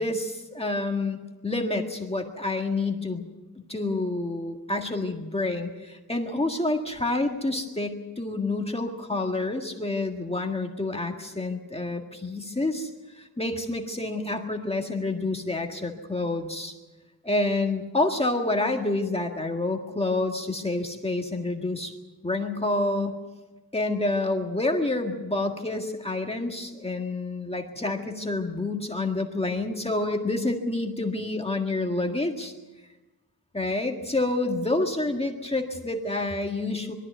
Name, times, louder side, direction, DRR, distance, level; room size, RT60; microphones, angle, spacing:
voice 1, 0.0-3.2 3.7-16.7 17.2-21.9 22.2-23.2 23.7-32.5 33.5-36.9, left 2 dB, 15° left, 2 dB, 1.8 m, -28 dB
22.0 x 14.0 x 9.4 m, 1.2 s
wide cardioid pair, 145°, 35 cm